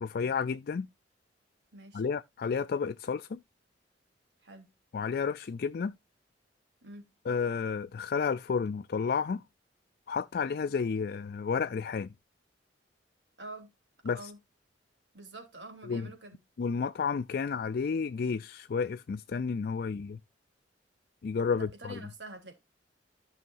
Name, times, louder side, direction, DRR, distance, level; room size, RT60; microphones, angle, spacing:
voice 1, 0.0-0.9 1.9-3.4 4.9-5.9 7.3-9.4 10.1-12.1 14.1-14.3 15.8-16.1 16.6-20.2 21.2-22.0, left 5 dB, 55° left, 0.4 m, -31 dB
voice 2, 1.7-2.1 4.4-4.7 6.8-7.1 10.7-10.8 13.4-13.7 14.1-14.4 15.1-16.4 21.5-22.5, right 2 dB, 70° right, 3.1 m, -47 dB
14.0 x 5.6 x 2.5 m
head